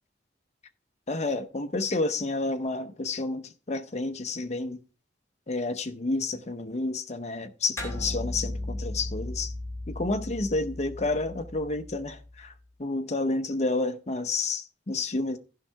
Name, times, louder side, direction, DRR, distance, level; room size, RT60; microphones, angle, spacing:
voice 1, 1.1-4.8 5.5-9.5 9.9-12.5 12.8-15.4, left 3 dB, 35° left, 0.7 m, -30 dB
sound 1, 7.8-12.5, left 1 dB, 15° left, 2.3 m, -36 dB
15.0 x 5.6 x 3.4 m
head